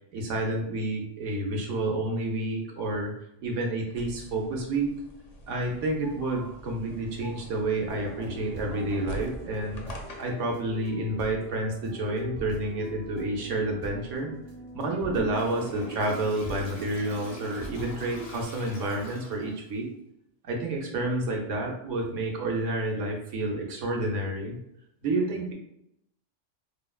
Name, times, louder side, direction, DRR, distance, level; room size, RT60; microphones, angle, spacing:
voice 1, 0.1-3.1 3.4-4.9 5.5-9.9 10.2-14.3 14.8-19.9 20.4-24.6 25.0-25.5, right 2 dB, 75° right, 0 dB, 1.1 m, -29 dB
sound 1, 4.0-10.5, equal, 55° left, 0.4 m, -44 dB
sound 2, 7.9-18.5, equal, 50° right, 0.7 m, -42 dB
Toilet flush, 15.3-19.7, left 1 dB, 90° left, 1.2 m, -44 dB
4.6 x 2.1 x 2.3 m, 0.78 s
omnidirectional pair, 1.3 m